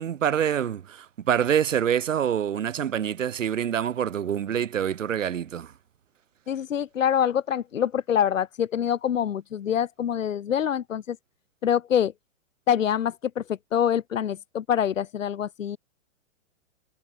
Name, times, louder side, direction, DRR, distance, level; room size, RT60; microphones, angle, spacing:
voice 1, 0.0-5.7, right 9 dB, 80° right, 4.0 m, -26 dB
voice 2, 6.5-11.2 11.6-12.1 12.7-15.8, left 9 dB, 85° left, 2.2 m, -25 dB
hypercardioid pair, 160°, 38 cm